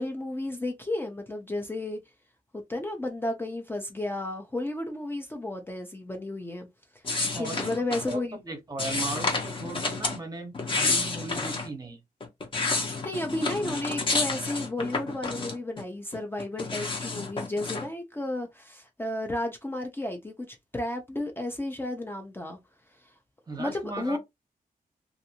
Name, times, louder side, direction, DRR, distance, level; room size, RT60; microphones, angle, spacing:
voice 1, 0.0-2.0 2.5-6.7 7.4-8.4 13.0-22.6 23.6-24.2, left 1 dB, 15° left, 0.5 m, -32 dB
sound 1, 7.0-8.2 8.8-10.2 10.5-11.7 12.2-15.8 16.1-17.9, left 3 dB, 35° left, 0.8 m, -30 dB
voice 2, 7.2-7.7 8.1-12.0 23.5-24.2, right 2 dB, 25° right, 0.8 m, -37 dB
2.5 x 2.5 x 2.8 m
wide cardioid pair, 155°, 15 cm